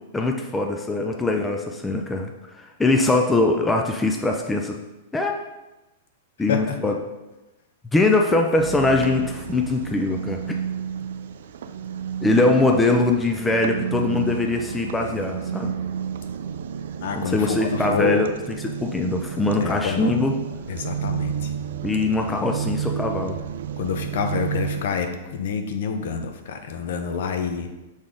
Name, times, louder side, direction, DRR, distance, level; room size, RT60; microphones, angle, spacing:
voice 1, 0.1-4.8 5.1-5.3 6.4-6.9 7.9-10.4 12.2-15.7 17.1-18.3 18.8-20.3 21.8-23.4, left 2 dB, 5° left, 2 dB, 0.3 m, -22 dB
sound 1, 8.6-24.8, right 8 dB, 70° right, 0.3 m, -31 dB
voice 2, 12.6-13.0 17.0-18.3 19.6-20.2 20.7-21.5 23.8-27.7, left 6 dB, 60° left, 7 dB, 0.7 m, -27 dB
6.5 x 4.0 x 3.6 m, 1.0 s
supercardioid pair, 170°, 0 cm